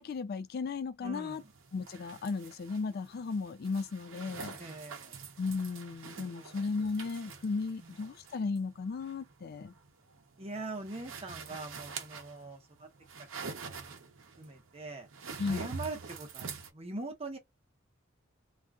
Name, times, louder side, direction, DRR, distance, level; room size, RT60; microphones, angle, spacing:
voice 1, 0.0-1.4 1.7-4.5 5.4-9.7 15.4-15.7, left 4 dB, 50° left, 0.3 m, -35 dB
voice 2, 1.0-1.4 4.6-5.2 6.3-6.5 7.8-8.0 10.4-12.9 13.3-14.0 14.4-15.1 15.4-17.4, right 2 dB, 30° right, 0.9 m, -43 dB
sound 1, 1.3-16.7, right 5 dB, 75° right, 0.7 m, -46 dB
2.5 x 2.3 x 3.4 m
head